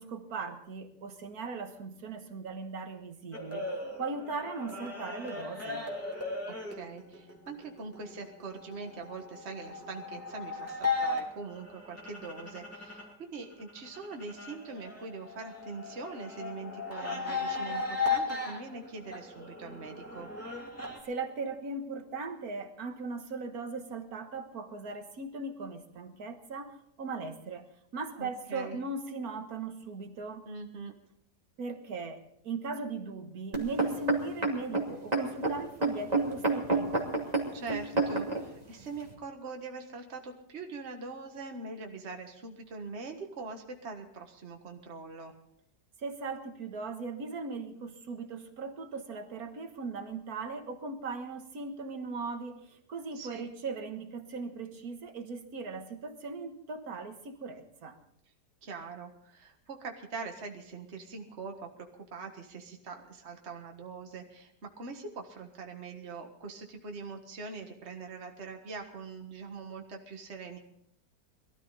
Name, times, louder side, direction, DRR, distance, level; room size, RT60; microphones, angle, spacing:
voice 1, 0.0-3.7 4.0-5.8 21.0-27.7 27.9-30.5 31.6-32.2 32.4-37.1 46.0-58.0, right 4 dB, 60° right, 7 dB, 1.9 m, -38 dB
sound 1, 3.3-13.1 13.4-21.0, left 4 dB, 10° left, 2.8 m, -37 dB
voice 2, 6.5-20.3 28.2-28.8 30.5-30.9 37.5-45.3 53.1-53.5 58.6-70.6, right 4 dB, 40° right, 3 dB, 1.8 m, -43 dB
sound 2, 33.5-38.4 39.1-39.2, right 3 dB, 25° right, 2.7 m, -29 dB
22.0 x 13.5 x 4.0 m, 0.70 s
omnidirectional pair, 1.8 m